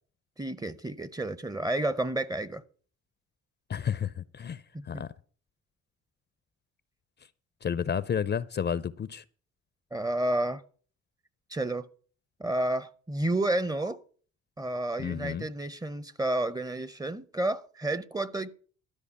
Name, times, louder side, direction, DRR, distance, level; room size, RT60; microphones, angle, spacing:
voice 1, 0.4-2.6 4.7-5.0 9.9-10.6 11.5-11.9 12.4-14.0 14.6-18.5, right 1 dB, 10° right, 0.7 m, -30 dB
voice 2, 3.7-4.6 4.9-5.1 7.6-9.2 15.0-15.5, left 8 dB, 35° left, 0.6 m, -31 dB
12.5 x 5.0 x 8.2 m
cardioid pair, 90°, 30 cm